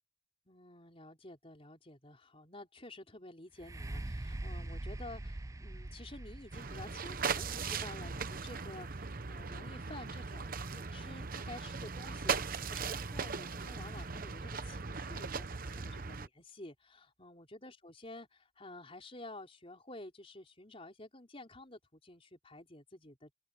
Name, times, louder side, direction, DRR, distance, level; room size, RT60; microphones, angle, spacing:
voice 1, 0.5-23.3, left 2 dB, 30° left, 4.7 m, -51 dB
sound 1, 3.5-11.3 11.9-12.0, right 1 dB, 15° right, 0.5 m, -45 dB
sound 2, 6.5-16.3, right 5 dB, 45° right, 0.9 m, -39 dB
open air
head